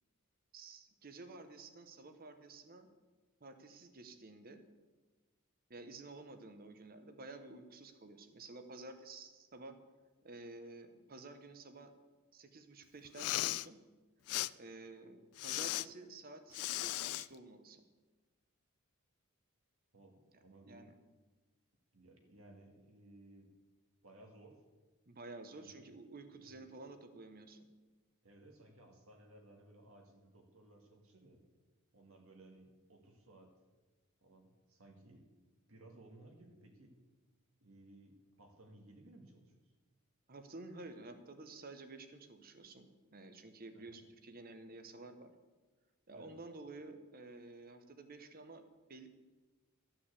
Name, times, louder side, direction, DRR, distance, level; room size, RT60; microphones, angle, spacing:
voice 1, 0.5-2.9 3.4-4.6 5.7-9.8 10.2-11.9 12.3-13.8 14.5-17.8 20.7-20.9 25.1-27.7 40.3-45.3 46.1-48.6 48.9-49.1, right 2 dB, 40° right, 8 dB, 1.1 m, -52 dB
Respiratory sounds, 13.1-13.7 14.3-14.5 15.4-15.9 16.5-17.3, left 16 dB, 80° left, 0.3 m, -36 dB
voice 2, 19.9-20.9 21.9-23.6 24.0-24.7 25.5-26.0 26.4-26.7 28.2-31.4 31.9-33.5 34.2-35.3 35.7-37.0 37.6-39.7 43.7-44.0 46.1-46.4, right 2 dB, 65° right, 2 dB, 2.0 m, -59 dB
13.0 x 6.0 x 8.3 m, 1.3 s
head